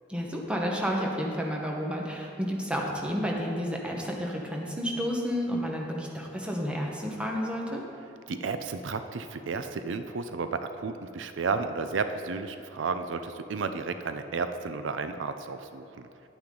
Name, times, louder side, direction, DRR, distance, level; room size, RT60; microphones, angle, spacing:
voice 1, 0.1-7.8, equal, 5° right, -1 dB, 1.1 m, -31 dB
voice 2, 8.3-16.1, right 4 dB, 90° right, 9 dB, 0.5 m, -32 dB
10.5 x 8.8 x 3.8 m, 2.9 s
head